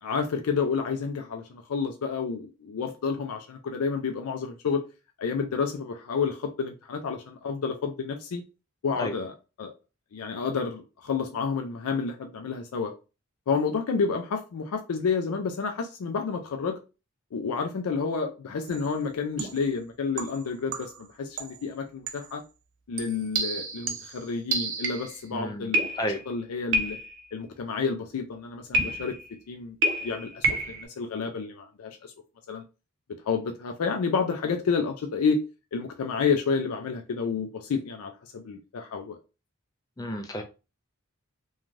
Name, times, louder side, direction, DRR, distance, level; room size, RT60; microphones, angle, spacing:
voice 1, 0.0-4.8 5.2-8.4 8.8-9.7 10.1-12.9 13.5-16.8 17.3-22.4 22.9-25.9 26.3-27.0 27.3-29.2 29.5-29.8 30.0-32.0 32.5-32.6 33.3-35.4 35.7-39.2, left 5 dB, 85° left, 0.4 m, -30 dB
sound 1, 18.7-18.9 19.4-19.7 20.2-21.1 21.4-21.6 22.1-22.3 23.0-25.2 25.7-26.3 26.7-27.3 28.7-29.3 29.8-30.8, right 2 dB, 60° right, 0.6 m, -30 dB
voice 2, 25.3-25.7 26.0-26.2 40.0-40.4, equal, 15° left, 0.3 m, -31 dB
3.1 x 2.3 x 2.5 m
head